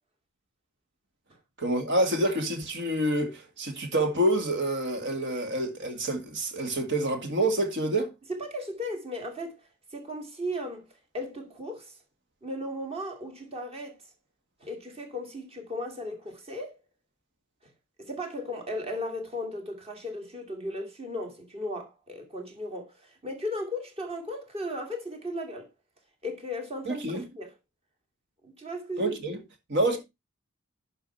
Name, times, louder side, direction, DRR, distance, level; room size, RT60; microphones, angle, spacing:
voice 1, 1.6-8.1 26.9-27.2 29.0-29.4 29.7-30.0, right 1 dB, 55° right, 2.1 m, -27 dB
voice 2, 8.3-9.6 9.9-10.9 11.1-12.0 12.4-14.0 14.6-16.8 17.6-17.7 18.0-25.7 26.2-27.6 28.4-29.2, left 1 dB, 30° right, 2.4 m, -36 dB
11.0 x 5.1 x 4.4 m
head